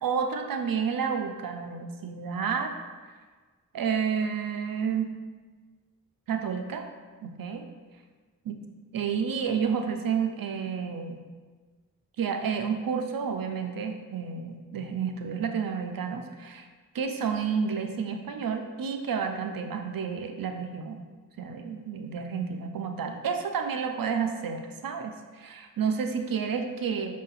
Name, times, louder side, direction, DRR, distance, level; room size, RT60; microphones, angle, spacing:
voice 1, 0.0-2.7 3.7-5.1 6.3-6.9 7.2-7.6 8.4-8.6 8.9-11.2 12.2-16.7 16.9-21.0 21.4-27.2, right 6 dB, 70° right, 5 dB, 0.5 m, -30 dB
4.8 x 2.8 x 3.9 m, 1.4 s
cardioid pair, 55°, 35 cm